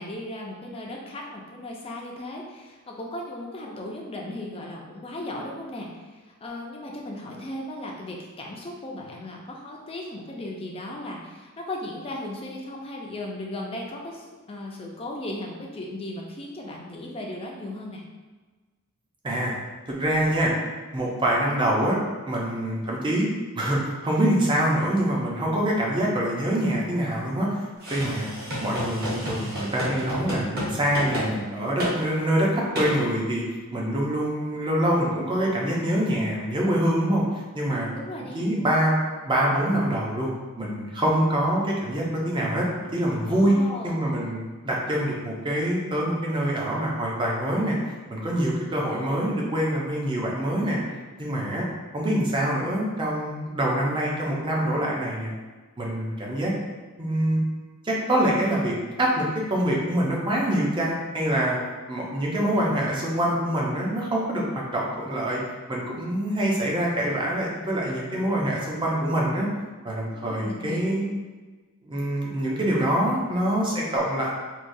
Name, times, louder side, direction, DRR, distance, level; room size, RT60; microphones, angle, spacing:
voice 1, 0.0-6.1 6.4-18.0 37.7-38.4 43.2-44.1 70.1-71.0, left 1 dB, 25° left, -1 dB, 0.5 m, -36 dB
voice 2, 19.9-20.5 20.9-22.0 22.3-23.3 23.6-27.5 27.9-28.3 28.6-33.4 33.7-37.2 37.5-37.9 38.2-38.9 39.2-40.3 40.6-43.6 43.8-47.8 48.1-50.8 51.2-51.7 51.9-55.3 55.8-56.5 57.0-57.4 57.8-61.6 61.9-64.4 64.7-65.4 65.7-69.5 69.8-71.0 71.8-74.3, right 1 dB, 20° right, -3 dB, 0.6 m, -25 dB
sound 1, 27.8-30.7 30.9-31.3 31.8-31.9 32.8-32.9, equal, 45° right, 1.3 m, -30 dB
4.6 x 2.3 x 2.6 m, 1.3 s
head